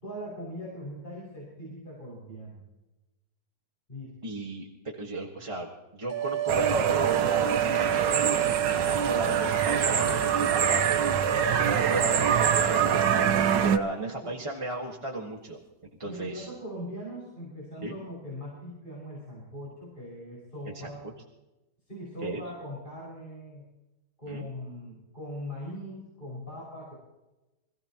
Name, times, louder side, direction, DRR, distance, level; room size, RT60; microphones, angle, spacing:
voice 1, 0.0-2.6 3.9-4.3 13.8-14.3 16.0-21.0 21.9-23.7 24.2-26.9, equal, 25° left, -6 dB, 5.9 m, -40 dB
voice 2, 4.2-4.7 5.0-11.1 11.7-15.6 16.0-16.5 17.8-18.0 20.6-20.9 22.2-22.4 24.3-24.5, right 2 dB, 20° right, -3 dB, 1.5 m, -36 dB
sound 1, 6.1-13.7, right 11 dB, 65° right, 1.0 m, -29 dB
sound 2, 6.5-13.8, right 7 dB, 90° right, 1.6 m, -25 dB
26.0 x 16.0 x 3.0 m, 1.0 s
omnidirectional pair, 1.9 m